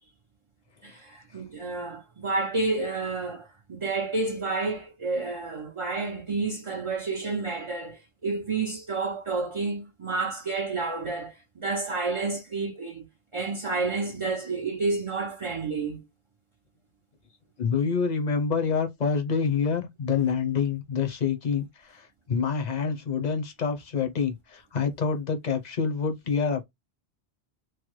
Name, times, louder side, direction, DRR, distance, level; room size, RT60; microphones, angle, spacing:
voice 1, 0.8-13.1 13.3-16.0, right 3 dB, 40° right, 0.5 m, -30 dB
voice 2, 17.6-26.6, left 6 dB, 45° left, 0.7 m, -27 dB
3.1 x 2.1 x 3.0 m
omnidirectional pair, 1.1 m